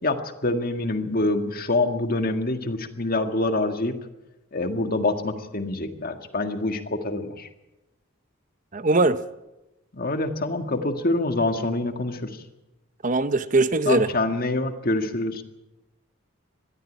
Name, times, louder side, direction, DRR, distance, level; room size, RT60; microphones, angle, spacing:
voice 1, 0.0-3.9 4.5-7.5 9.9-12.4 13.9-15.4, left 2 dB, 45° left, 1.8 m, -26 dB
voice 2, 8.7-9.2 13.0-14.1, right 3 dB, 35° right, 0.7 m, -20 dB
21.5 x 13.5 x 9.0 m
head